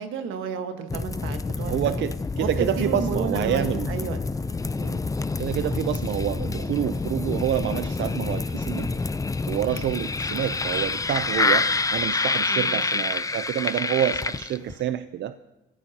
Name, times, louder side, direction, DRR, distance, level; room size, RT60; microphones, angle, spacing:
voice 1, 0.0-1.9 2.4-4.2 4.8-5.1 12.5-12.8, right 7 dB, 90° right, 6 dB, 1.5 m, -32 dB
sound 1, 0.9-14.8, left 3 dB, 15° left, 0.5 m, -27 dB
voice 2, 1.6-3.9 5.4-9.0 9.5-15.3, right 11 dB, 65° right, 11 dB, 0.5 m, -28 dB
25.5 x 15.0 x 2.9 m, 1.0 s
cardioid pair, 90°, 20 cm